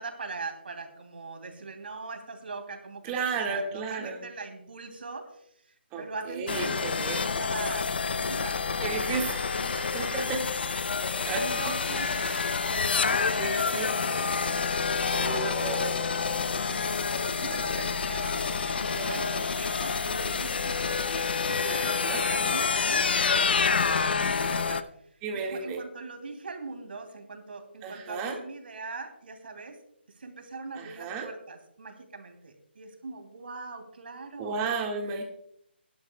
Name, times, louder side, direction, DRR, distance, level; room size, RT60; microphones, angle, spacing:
voice 1, 0.0-7.9 8.2-10.3 11.3-14.1 15.0-15.9 16.6-17.1 17.4-21.0 21.5-23.6 23.9-29.8 30.1-34.7, right 3 dB, 65° right, 5 dB, 2.9 m, -42 dB
voice 2, 3.0-4.2 5.9-7.2 8.8-9.4 9.9-10.4 11.3-11.6 12.3-12.4 13.4-13.9 15.1-16.5 17.1-17.6 18.9-19.5 21.7-22.2 25.2-25.8 27.8-28.4 30.8-31.3 34.4-35.2, right 4 dB, 20° right, 2 dB, 1.9 m, -34 dB
sound 1, 6.5-24.8, left 5 dB, 60° left, 0.7 m, -28 dB
sound 2, 11.8-21.8, left 1 dB, 10° left, 3.6 m, -45 dB
17.5 x 11.5 x 2.3 m, 0.74 s
figure-of-eight pair, 155°, 6 cm